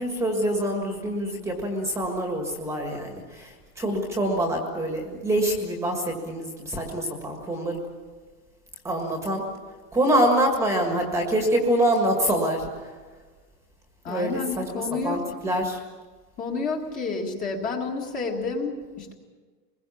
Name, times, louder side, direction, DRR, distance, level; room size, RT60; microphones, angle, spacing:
voice 1, 0.0-7.8 8.8-9.4 9.9-12.7 14.1-15.8, right 1 dB, 5° right, 2 dB, 1.7 m, -25 dB
voice 2, 14.0-15.3 16.4-19.1, left 4 dB, 15° left, 1 dB, 1.8 m, -30 dB
24.5 x 21.5 x 7.1 m, 1.4 s
supercardioid pair, 180°, 50 cm